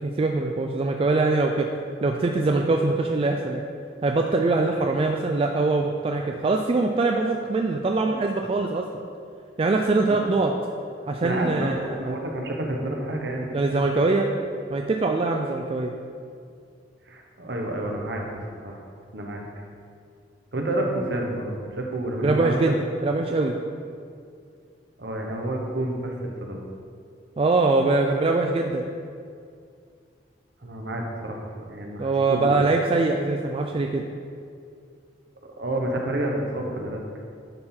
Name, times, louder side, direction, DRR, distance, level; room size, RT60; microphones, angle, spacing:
voice 1, 0.0-1.7 2.0-3.6 4.0-8.8 9.6-10.5 11.1-12.2 13.5-14.3 14.7-15.9 22.2-22.8 23.0-23.5 27.4-28.8 32.0-34.0, right 3 dB, 30° right, 3 dB, 0.3 m, -23 dB
voice 2, 11.2-13.6 17.1-18.8 19.1-19.4 20.5-22.6 25.0-26.6 30.6-32.6 35.6-37.0, right 1 dB, 65° right, 1 dB, 1.0 m, -29 dB
10.5 x 3.8 x 4.4 m, 2.3 s
head